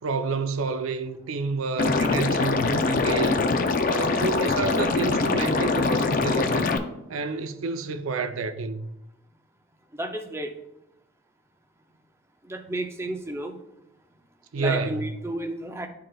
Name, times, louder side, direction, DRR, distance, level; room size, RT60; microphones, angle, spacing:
voice 1, 0.0-3.5 3.9-6.7 7.1-8.9 14.5-15.0, right 4 dB, 85° right, 0.5 m, -29 dB
Liquid, 1.8-6.8, left 3 dB, 45° left, 0.4 m, -23 dB
voice 2, 10.0-10.5 12.5-13.6 14.6-15.9, right 1 dB, 15° right, 0.5 m, -32 dB
11.0 x 3.8 x 2.3 m
head